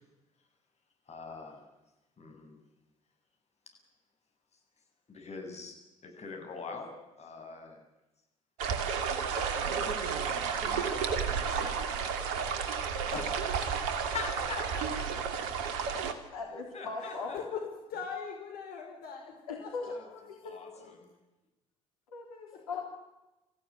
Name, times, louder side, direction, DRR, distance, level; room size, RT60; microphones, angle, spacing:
voice 1, 1.1-1.6 2.2-2.6 5.1-5.8 6.0-7.8 10.6-10.9 13.1-14.6 16.7-17.4 19.9-20.0 20.4-21.1, left 4 dB, 40° left, 3 dB, 7.6 m, -43 dB
sound 1, 8.6-16.1, right 6 dB, 70° right, 2.5 m, -32 dB
voice 2, 10.7-12.2 14.5-15.5 17.0-20.0 22.5-22.6, left 6 dB, 60° left, 2 dB, 4.7 m, -43 dB
voice 3, 16.3-17.3 19.5-21.0 22.1-22.8, left 4 dB, 85° left, 1 dB, 3.2 m, -40 dB
27.0 x 15.5 x 9.7 m, 1.0 s
hypercardioid pair, 55°, 18 cm